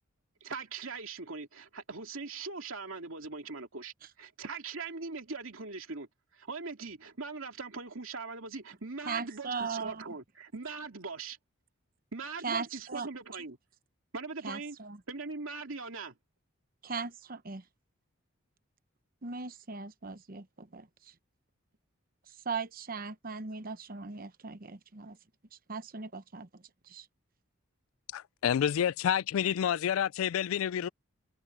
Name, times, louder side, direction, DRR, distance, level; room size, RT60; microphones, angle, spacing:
voice 1, 0.4-11.4 12.1-13.6 14.1-14.8 15.1-16.1, right 4 dB, 75° right, 2.5 m, -41 dB
voice 2, 9.1-10.0 12.4-13.1 14.4-15.0 16.8-17.6 19.2-20.9 22.4-25.2 25.7-26.5 26.9-27.0, right 4 dB, 40° right, 0.9 m, -38 dB
voice 3, 28.1-30.9, left 9 dB, 75° left, 0.3 m, -29 dB
head